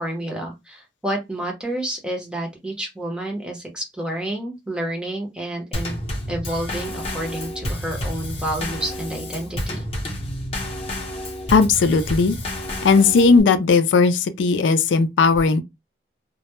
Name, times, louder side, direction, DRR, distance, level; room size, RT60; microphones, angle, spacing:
voice 1, 0.0-6.0 6.3-9.8, right 1 dB, 5° right, 0.7 m, -29 dB
Drum kit / Snare drum / Bass drum, 5.7-13.4, left 1 dB, 35° left, 0.7 m, -30 dB
voice 2, 11.5-12.4 12.8-15.6, left 4 dB, 80° left, 0.4 m, -17 dB
2.2 x 2.0 x 2.9 m
head